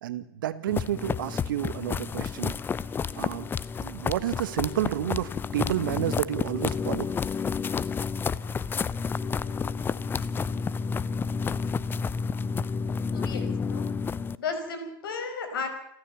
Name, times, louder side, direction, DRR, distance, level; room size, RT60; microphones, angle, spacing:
voice 1, 0.0-2.5 3.2-3.5 3.8-7.1, right 12 dB, 60° right, 14 dB, 1.5 m, -30 dB
sound 1, 0.7-14.4, left 5 dB, 15° left, 0.7 m, -30 dB
voice 2, 13.1-13.9 14.4-15.7, left 5 dB, 65° left, 7 dB, 5.4 m, -34 dB
29.5 x 13.5 x 7.1 m, 0.79 s
figure-of-eight pair, 95°, 13 cm